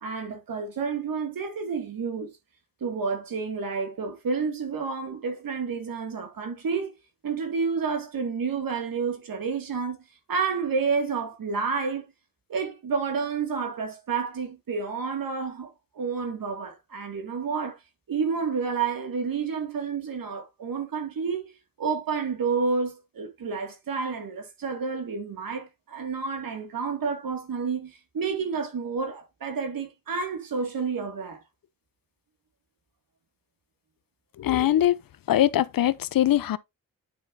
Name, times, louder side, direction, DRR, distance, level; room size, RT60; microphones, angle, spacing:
voice 1, 0.0-2.3 2.8-7.0 7.2-10.0 10.3-12.1 12.5-17.8 18.1-21.5 21.8-31.4, right 5 dB, 75° right, 2.3 m, -30 dB
voice 2, 34.4-35.0 35.3-36.6, left 12 dB, 80° left, 0.7 m, -22 dB
9.4 x 5.8 x 2.7 m
cardioid pair, 50°, 34 cm